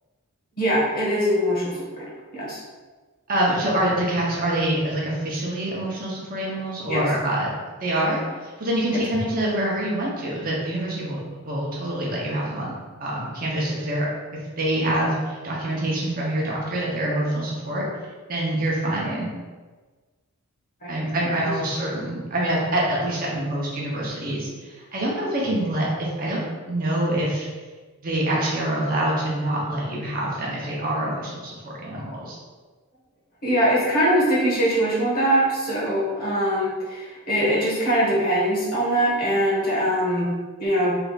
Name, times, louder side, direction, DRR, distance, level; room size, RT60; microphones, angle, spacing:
voice 1, 0.6-2.0 2.3-2.6 6.9-7.0 20.8-20.9 21.4-21.6 33.4-40.3 40.6-41.0, equal, 40° left, -7 dB, 1.2 m, -22 dB
voice 2, 3.3-7.5 7.8-11.2 11.4-12.7 13.0-14.1 14.3-17.8 18.3-19.3 20.9-26.4 26.7-27.5 28.0-31.6 31.8-32.4, right 1 dB, 40° right, -4 dB, 0.7 m, -25 dB
3.3 x 2.4 x 4.0 m, 1.3 s
head